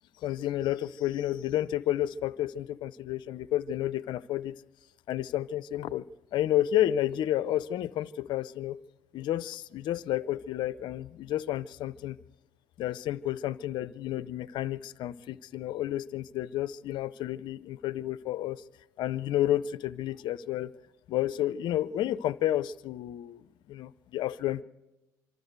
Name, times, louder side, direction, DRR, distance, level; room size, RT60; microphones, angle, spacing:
voice 1, 0.2-4.6 5.1-6.1 6.3-8.8 9.1-12.2 12.8-18.6 19.0-20.7 21.1-24.6, left 13 dB, 65° left, 17 dB, 0.6 m, -31 dB
25.5 x 13.0 x 8.0 m, 1.1 s
hypercardioid pair, 55°, 8 cm